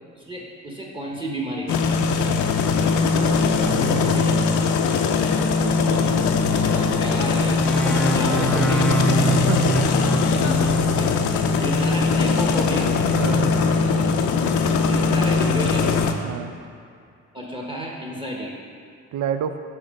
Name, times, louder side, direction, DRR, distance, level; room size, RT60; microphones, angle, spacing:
voice 1, 0.1-2.0 4.1-4.3 5.8-6.2 6.7-8.9 10.4-12.9 14.9-15.9 17.3-18.5, right 1 dB, 15° right, -2 dB, 1.0 m, -32 dB
sound 1, 1.7-16.1, left 4 dB, 75° left, 0.5 m, -20 dB
voice 2, 3.1-4.4 9.2-9.7 11.5-11.7 13.1-13.5 16.2-16.5 19.1-19.6, right 8 dB, 75° right, 9 dB, 0.5 m, -29 dB
sound 2, 7.6-11.2, right 2 dB, 5° left, 0.5 m, -25 dB
5.7 x 3.8 x 5.2 m, 2.4 s
cardioid pair, 90°, 30 cm